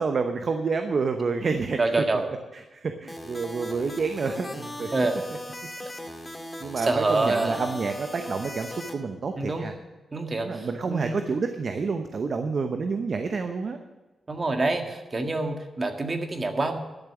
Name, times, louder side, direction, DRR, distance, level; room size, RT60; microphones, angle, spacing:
voice 1, 0.0-2.0 2.5-4.9 6.6-9.7 10.4-13.8, right 4 dB, 60° right, 7 dB, 0.9 m, -28 dB
voice 2, 1.8-2.3 4.9-5.2 6.8-7.8 9.4-9.7 10.1-11.2 14.3-16.8, right 2 dB, 40° right, 4 dB, 1.8 m, -26 dB
sound 1, 3.1-8.9, left 1 dB, 15° left, 2.1 m, -38 dB
11.5 x 7.1 x 8.1 m, 1.1 s
cardioid pair, 55°, 0 cm